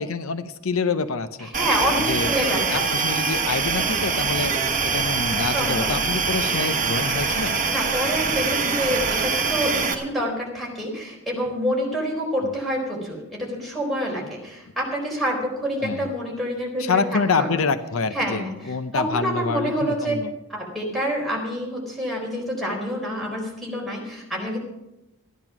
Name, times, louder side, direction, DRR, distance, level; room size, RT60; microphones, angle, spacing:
voice 1, 0.0-1.5 2.1-7.6 15.8-16.1 16.8-20.3, left 4 dB, 75° left, 11 dB, 0.7 m, -27 dB
voice 2, 1.4-2.8 5.5-6.1 7.7-17.0 17.3-17.5 18.1-20.1 20.5-24.6, equal, ahead, -3 dB, 4.4 m, -27 dB
sound 1, 1.5-9.9, right 5 dB, 35° right, 1.3 m, -24 dB
14.0 x 11.0 x 6.0 m, 0.94 s
head